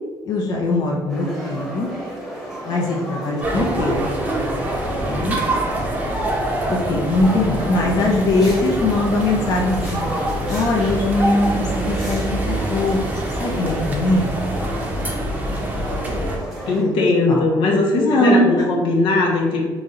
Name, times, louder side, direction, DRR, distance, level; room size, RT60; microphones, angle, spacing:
voice 1, 0.2-1.9 2.7-4.1 5.0-5.4 6.7-10.0 10.5-14.3 16.6-17.5 17.9-18.4, left 2 dB, 50° left, -2 dB, 0.5 m, -21 dB
sound 1, 1.1-16.8, right 1 dB, ahead, 1.0 m, -33 dB
sound 2, 3.4-16.4, right 1 dB, 15° right, 0.6 m, -25 dB
voice 2, 16.7-19.6, left 2 dB, 80° left, -1 dB, 0.8 m, -19 dB
3.0 x 2.6 x 3.7 m, 1.4 s
cardioid pair, 135°, 9 cm